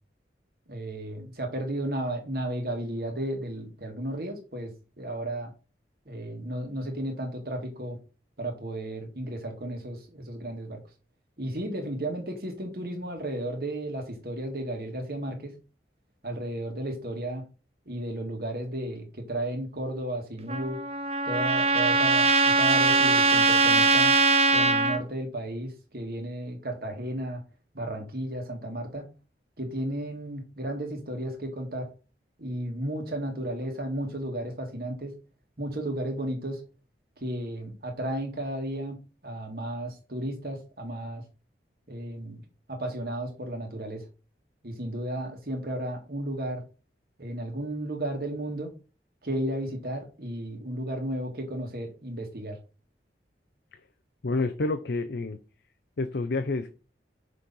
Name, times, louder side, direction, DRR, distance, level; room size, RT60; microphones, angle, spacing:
voice 1, 0.7-5.5 6.1-8.0 8.4-10.8 11.4-15.5 16.2-17.4 17.9-20.8 21.3-24.2 24.5-27.4 27.7-29.0 29.6-31.9 32.4-35.1 35.6-36.6 37.2-39.0 39.2-41.2 41.9-42.4 42.7-44.1 44.6-46.6 47.2-48.7 49.2-52.6, right 1 dB, 55° right, 3 dB, 1.9 m, -33 dB
Trumpet, 20.5-25.0, right 3 dB, 35° right, 0.7 m, -21 dB
voice 2, 54.2-55.4 56.0-56.7, left 3 dB, 70° left, 9 dB, 0.6 m, -28 dB
6.4 x 4.3 x 5.4 m, 0.34 s
head